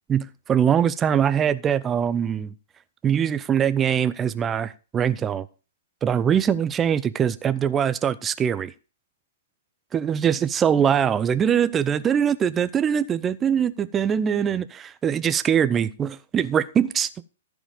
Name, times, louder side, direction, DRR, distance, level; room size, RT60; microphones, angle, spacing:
voice 1, 0.1-2.5 3.0-5.5 6.0-8.7 9.9-17.2, right 8 dB, 15° right, 0.7 m, -22 dB
14.5 x 5.1 x 6.7 m
figure-of-eight pair, 115°, 0 cm